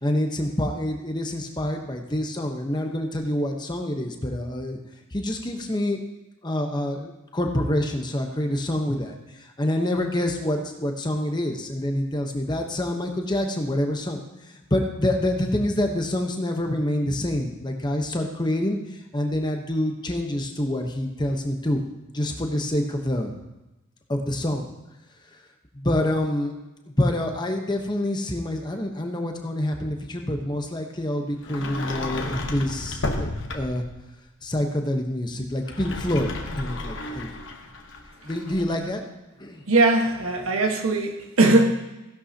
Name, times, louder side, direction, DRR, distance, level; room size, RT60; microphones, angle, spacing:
voice 1, 0.0-4.8 5.1-6.0 6.4-14.2 14.5-18.8 19.1-21.8 22.1-23.3 24.1-24.7 25.7-26.5 27.0-33.8 34.4-37.3 38.2-39.0 39.4-39.6, left 1 dB, 20° left, 3 dB, 1.0 m, -26 dB
Sliding door, 31.4-33.9 35.6-38.7, left 2 dB, 60° left, 1.1 m, -32 dB
voice 2, 39.7-41.7, right 2 dB, 80° right, 3 dB, 1.4 m, -20 dB
15.5 x 11.0 x 2.9 m, 1.0 s
head